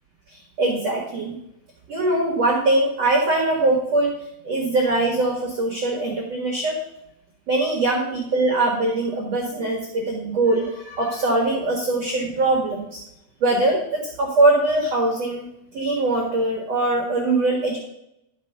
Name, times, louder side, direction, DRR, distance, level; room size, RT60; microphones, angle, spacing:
voice 1, 0.3-1.3 1.9-4.1 4.4-6.8 7.5-13.0 13.4-15.5 15.7-17.8, right 2 dB, 90° right, -1 dB, 1.4 m, -22 dB
13.0 x 4.3 x 5.4 m, 0.79 s
omnidirectional pair, 5.6 m